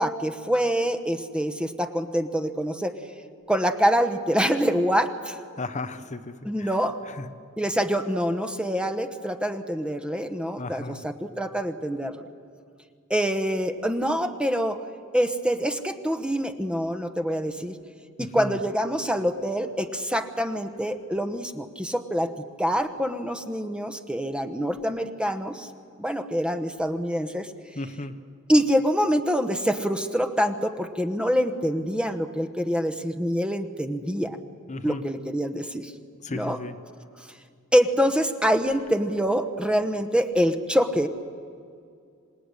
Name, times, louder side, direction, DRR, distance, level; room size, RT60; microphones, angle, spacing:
voice 1, 0.0-2.9 3.5-5.4 6.4-7.0 7.6-12.2 13.1-14.8 15.1-17.7 18.2-25.7 26.0-27.5 28.5-34.4 34.8-35.9 36.3-36.6 37.7-41.1, equal, 5° right, 9 dB, 1.0 m, -25 dB
voice 2, 5.6-6.7 7.1-7.3 10.6-11.0 18.2-18.6 27.8-28.1 34.7-35.0 36.2-36.7, left 2 dB, 35° left, 10 dB, 1.0 m, -35 dB
26.5 x 18.0 x 9.8 m, 2.3 s
head